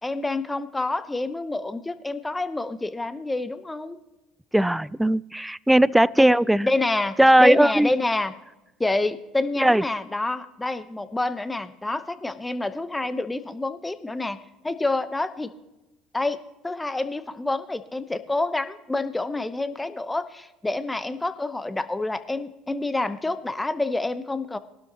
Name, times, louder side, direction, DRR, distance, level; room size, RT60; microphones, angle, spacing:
voice 1, 0.0-4.0 6.2-6.3 6.6-8.3 8.8-14.4 14.6-15.5 16.1-16.4 16.6-24.6, left 2 dB, 15° left, 12 dB, 1.0 m, -28 dB
voice 2, 4.5-6.7 7.2-7.9 9.6-9.8, right 1 dB, 5° right, 23 dB, 0.3 m, -18 dB
19.5 x 12.0 x 3.0 m, 0.98 s
hypercardioid pair, 70°, 0 cm